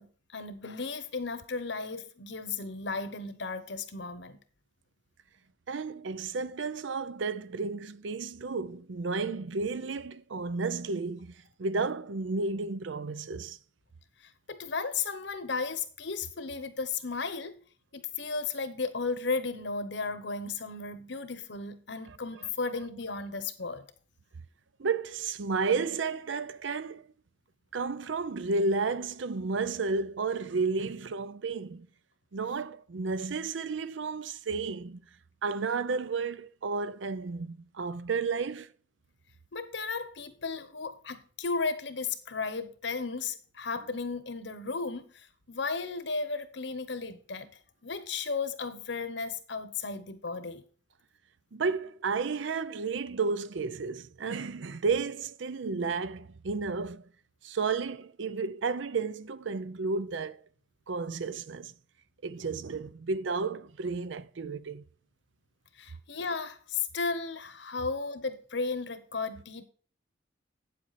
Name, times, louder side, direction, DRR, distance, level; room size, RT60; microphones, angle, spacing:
voice 1, 0.0-4.4 14.2-17.5 17.9-23.8 39.5-47.5 47.8-50.6 65.7-69.6, left 4 dB, 65° left, 1.0 m, -35 dB
voice 2, 5.7-11.3 11.6-13.6 22.1-22.2 24.8-27.1 27.7-31.9 32.3-35.0 35.4-38.7 51.5-57.1 57.4-60.4 60.9-61.7 62.2-64.8, right 4 dB, 75° right, 0.6 m, -32 dB
8.6 x 7.7 x 4.2 m
head